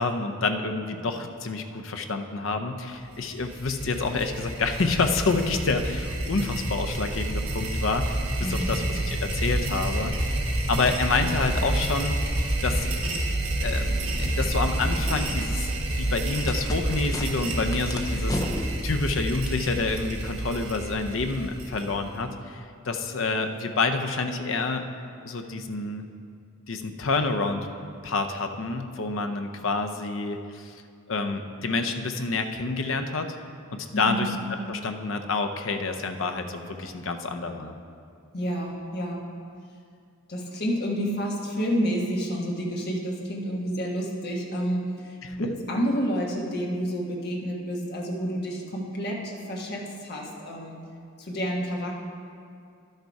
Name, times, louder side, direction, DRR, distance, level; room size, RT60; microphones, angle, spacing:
voice 1, 0.0-8.2 8.5-10.4 10.7-12.2 12.6-12.9 13.6-15.7 16.0-18.4 18.8-24.8 25.3-26.0 26.7-27.7 28.0-30.7 31.1-33.4 33.7-34.4 34.7-37.7 45.2-45.5, left 3 dB, 65° left, 6 dB, 0.6 m, -28 dB
sound 1, 3.1-22.2, right 1 dB, 70° right, 1.2 m, -29 dB
voice 2, 8.4-8.8 33.9-34.3 38.3-39.2 40.3-50.8 51.2-52.0, equal, 50° left, -2 dB, 1.3 m, -29 dB
sound 2, 13.7-18.8, left 1 dB, 15° left, 0.5 m, -36 dB
11.5 x 6.6 x 4.7 m, 2.3 s
head